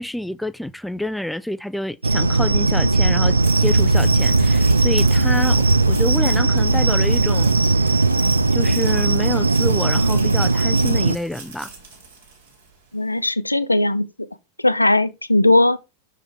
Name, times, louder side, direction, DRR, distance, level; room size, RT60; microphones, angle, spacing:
voice 1, 0.0-7.5 8.5-11.7, left 1 dB, ahead, 0.3 m, -28 dB
sound 1, 2.0-11.2, right 3 dB, 80° right, 0.3 m, -17 dB
sound 2, 3.2-12.8, right 4 dB, 65° right, 2.7 m, -40 dB
voice 2, 12.9-14.3 14.6-15.8, left 2 dB, 85° left, 0.5 m, -18 dB
6.1 x 5.0 x 4.4 m
figure-of-eight pair, 90°, 0 cm